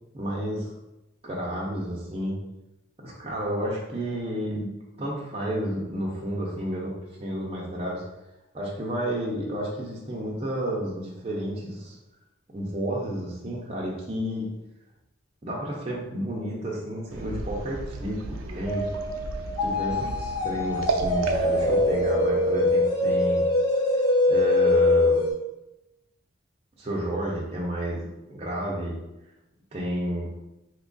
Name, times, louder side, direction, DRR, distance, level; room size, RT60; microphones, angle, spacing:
voice 1, 0.1-0.7 1.2-2.4 3.0-4.7 5.0-6.9 7.2-8.0 8.5-11.9 12.5-14.5 15.4-18.8 19.6-23.5 24.3-25.2 26.8-29.0 29.7-30.3, right 1 dB, 30° right, -4 dB, 0.5 m, -31 dB
sound 1, 17.1-22.9, right 2 dB, 85° right, 0.4 m, -35 dB
sound 2, 18.7-25.3, left 2 dB, 20° left, 0.7 m, -23 dB
2.9 x 2.4 x 3.8 m, 0.94 s
head